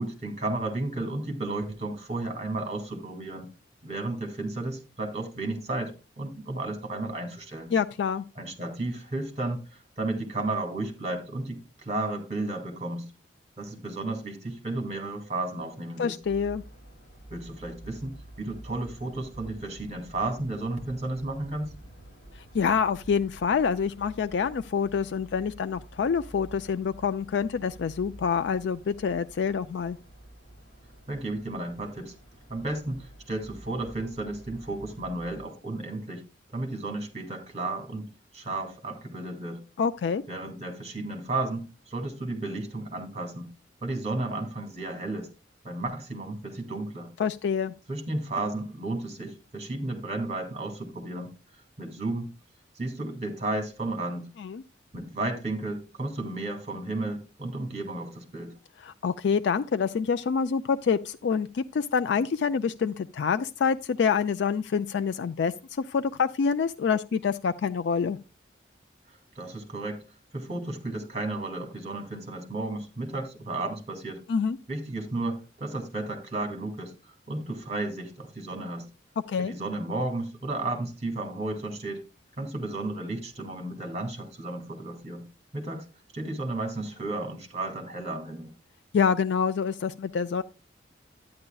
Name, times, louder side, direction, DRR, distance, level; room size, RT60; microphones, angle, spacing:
voice 1, 0.0-3.5 3.8-7.7 8.4-13.0 13.6-16.1 17.3-21.7 31.1-32.1 32.5-36.2 36.5-39.6 40.3-43.5 43.8-45.3 45.6-47.1 47.9-51.3 51.8-52.3 52.8-54.3 54.9-58.5 69.1-70.0 70.3-74.2 74.7-78.9 79.4-82.0 82.4-85.2 85.5-85.8 86.1-88.5, right 2 dB, 35° right, 2.1 m, -33 dB
voice 2, 7.7-8.2 16.0-16.6 22.3-30.0 39.8-40.2 47.2-47.7 54.4-54.6 58.8-68.2 74.3-74.6 79.3-79.5 88.9-90.4, left 6 dB, 65° left, 0.3 m, -26 dB
sound 1, 16.2-35.4, right 1 dB, 45° left, 5.2 m, -49 dB
11.0 x 9.6 x 2.3 m
head